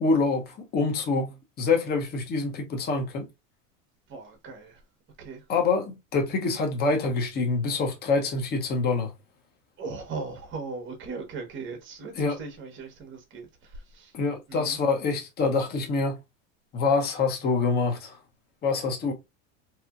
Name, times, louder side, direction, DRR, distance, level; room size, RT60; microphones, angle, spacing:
voice 1, 0.0-3.3 5.5-9.1 12.2-12.4 14.1-16.2 16.7-18.2 18.6-19.1, left 4 dB, 25° left, 0.7 m, -26 dB
voice 2, 4.1-4.8 5.2-5.5 9.8-14.2 14.5-14.8, right 4 dB, 30° right, 1.1 m, -38 dB
2.8 x 2.5 x 2.3 m
supercardioid pair, 125°, 39 cm